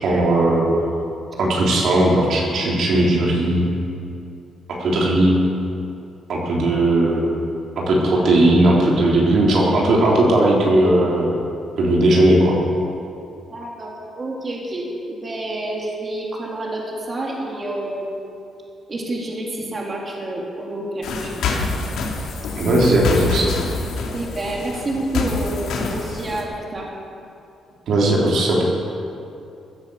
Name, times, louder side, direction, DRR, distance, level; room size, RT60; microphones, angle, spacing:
voice 1, 0.0-0.7 1.4-3.7 4.7-5.4 6.3-7.2 7.8-11.4 11.8-12.6 22.6-23.5 27.9-28.6, right 1 dB, 65° right, -3 dB, 3.5 m, -17 dB
voice 2, 13.5-18.2 18.9-21.3 24.1-26.9, right 1 dB, 35° right, -2 dB, 3.2 m, -28 dB
sound 1, 21.0-26.4, left 4 dB, 80° left, 2.5 m, -26 dB
15.5 x 10.5 x 7.6 m, 2.6 s
cardioid pair, 90°, 0 cm